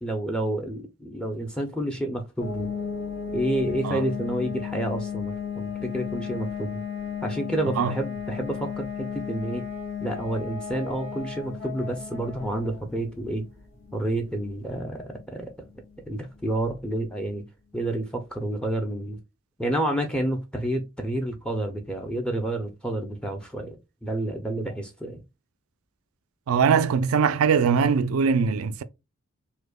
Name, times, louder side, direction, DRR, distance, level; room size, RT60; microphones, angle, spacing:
voice 1, 0.0-2.7 3.3-6.8 7.2-9.6 10.0-13.4 13.9-15.7 16.1-17.4 17.7-19.2 19.6-25.2, right 1 dB, 5° left, 0.5 m, -29 dB
sound 1, 2.4-17.0, left 7 dB, 60° left, 1.4 m, -35 dB
voice 2, 26.5-28.8, right 6 dB, 90° right, 0.4 m, -21 dB
5.0 x 2.1 x 2.2 m
head